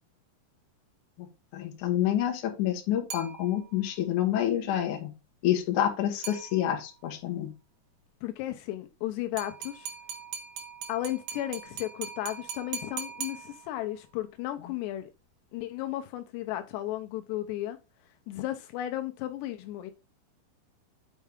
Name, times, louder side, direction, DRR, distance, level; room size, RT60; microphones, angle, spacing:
voice 1, 1.5-5.1 5.4-7.5, left 11 dB, 60° left, 2.4 m, -28 dB
sound 1, 3.1-3.9 6.2-7.0 9.4-14.0, right 7 dB, 75° right, 3.2 m, -41 dB
voice 2, 8.2-9.9 10.9-15.1 15.5-17.8 18.3-19.9, left 14 dB, 85° left, 2.8 m, -34 dB
8.3 x 4.6 x 3.5 m
omnidirectional pair, 4.9 m